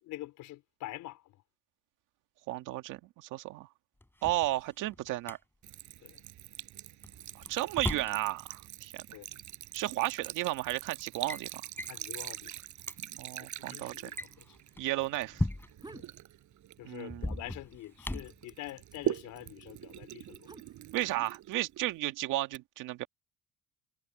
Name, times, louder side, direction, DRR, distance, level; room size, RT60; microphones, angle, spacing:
voice 1, 0.0-1.4 6.0-6.2 9.1-9.3 11.9-12.5 13.4-14.6 15.9-16.0 16.8-20.5, left 16 dB, 85° left, 3.9 m, -46 dB
voice 2, 2.5-3.7 4.2-5.4 7.5-9.0 9.7-11.6 13.2-13.9 14.8-15.4 16.8-17.4 20.9-23.1, right 16 dB, 90° right, 1.9 m, -33 dB
Drawer open or close, 4.0-5.4 7.0-8.2 9.5-9.6 10.4-10.7 11.0-11.4 11.8-12.0 12.5-12.6 12.8-13.0 14.0-15.9 17.1-18.4, left 1 dB, 5° left, 3.9 m, -38 dB
Sink (filling or washing) / Trickle dribble, 5.6-17.8 18.1-22.0, right 13 dB, 70° right, 7.7 m, -43 dB
sound 1, 15.7-16.2 16.6-17.3 17.6-21.2 21.9-22.6, right 2 dB, 15° right, 6.3 m, -53 dB
cardioid pair, 115°, 30 cm